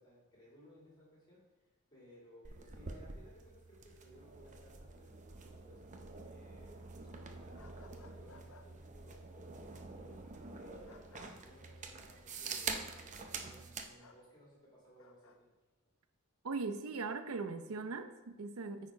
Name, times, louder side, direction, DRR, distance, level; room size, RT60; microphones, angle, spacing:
voice 1, 0.0-1.4 1.9-5.8 6.2-6.8 7.1-15.5, equal, 20° left, -5 dB, 2.2 m, -60 dB
sound 1, 2.4-13.9, right 4 dB, 35° right, 0.6 m, -46 dB
sound 2, 7.6-8.7 10.9-11.3 14.0-14.2 15.0-15.4, left 3 dB, 70° left, 0.8 m, -59 dB
voice 2, 16.4-18.9, right 4 dB, 85° right, 9 dB, 0.7 m, -40 dB
9.1 x 4.3 x 4.7 m, 1.2 s
head